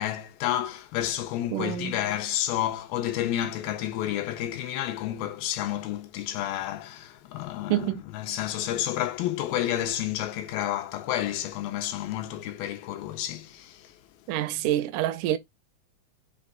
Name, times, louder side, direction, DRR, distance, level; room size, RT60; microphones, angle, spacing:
voice 1, 0.0-13.9, left 12 dB, 90° left, 2.5 m, -30 dB
voice 2, 1.5-2.0 7.7-8.0 14.3-15.4, right 13 dB, 80° right, 1.9 m, -27 dB
6.0 x 2.4 x 3.5 m
omnidirectional pair, 4.1 m